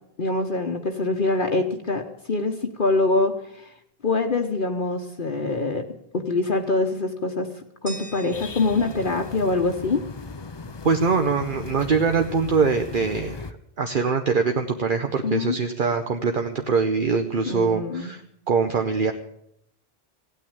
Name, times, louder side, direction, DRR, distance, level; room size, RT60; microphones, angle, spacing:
voice 1, 0.2-2.0 2.3-3.7 4.0-5.8 6.1-7.5 7.8-10.0 15.2-15.6 17.5-18.1, left 3 dB, 55° left, 4 dB, 1.2 m, -24 dB
sound 1, 7.9-10.8, right 2 dB, 30° right, 1.6 m, -45 dB
sound 2, 8.3-13.5, left 4 dB, 30° left, 0.5 m, -38 dB
voice 2, 10.8-13.5 13.8-18.2 18.5-19.1, right 5 dB, 55° right, 5 dB, 1.0 m, -23 dB
16.0 x 9.3 x 8.7 m, 0.74 s
omnidirectional pair, 1.1 m